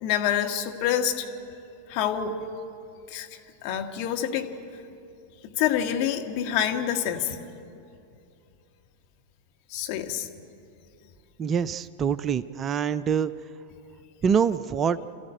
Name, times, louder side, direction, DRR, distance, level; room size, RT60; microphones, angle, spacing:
voice 1, 0.0-1.3 1.9-2.4 3.1-3.3 3.6-4.5 5.4-7.4 9.7-10.3, left 9 dB, 50° left, 4 dB, 1.9 m, -27 dB
voice 2, 11.4-13.3 14.2-15.0, right 7 dB, 30° right, 15 dB, 0.5 m, -25 dB
27.5 x 14.0 x 9.0 m, 2.6 s
figure-of-eight pair, 95°, 0 cm